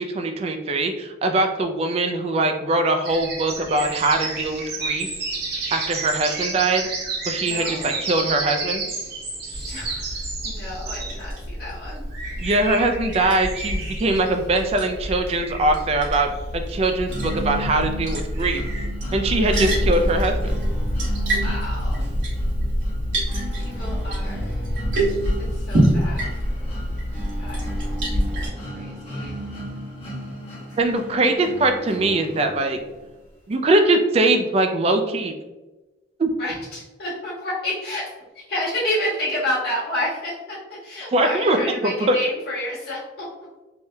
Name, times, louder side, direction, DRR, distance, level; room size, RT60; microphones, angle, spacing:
voice 1, 0.0-5.1 5.7-6.9 7.3-8.8 12.4-18.6 19.1-20.3 30.8-32.8 33.5-35.3 36.2-36.3 41.1-41.6 41.8-42.2, right 2 dB, 35° right, 6 dB, 0.3 m, -22 dB
black birds, 3.0-18.9, right 3 dB, 60° right, 0.7 m, -31 dB
voice 2, 7.4-8.0 9.5-12.1 21.2-22.1 23.6-24.6 25.4-26.3 27.4-28.0 28.3-29.4 36.4-38.1 38.3-43.3, left 1 dB, 55° left, -7 dB, 1.5 m, -30 dB
Liquid, 9.5-28.5, equal, 80° right, 1.4 m, -26 dB
sound 1, 17.1-33.0, right 1 dB, 30° left, 1.1 m, -36 dB
3.5 x 2.6 x 2.2 m, 1.1 s
head